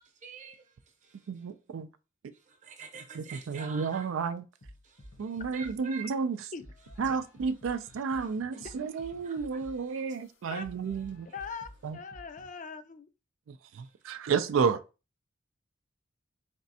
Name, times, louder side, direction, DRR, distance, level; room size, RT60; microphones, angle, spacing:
voice 1, 0.2-0.6 1.0-1.3 2.5-4.3 4.8-6.1 7.1-7.2 7.7-8.7 9.2-10.0, right 5 dB, 40° right, 0.8 m, -48 dB
voice 2, 1.3-1.9 3.1-4.4 5.2-6.4 7.0-11.3 11.8-12.0 13.8-14.8, right 5 dB, 75° right, 0.4 m, -31 dB
sound 1, 4.6-5.9 6.6-12.6, equal, 70° left, 1.0 m, -52 dB
voice 3, 10.5-11.0 11.3-13.1, left 5 dB, 40° left, 0.4 m, -42 dB
4.1 x 3.4 x 2.7 m
head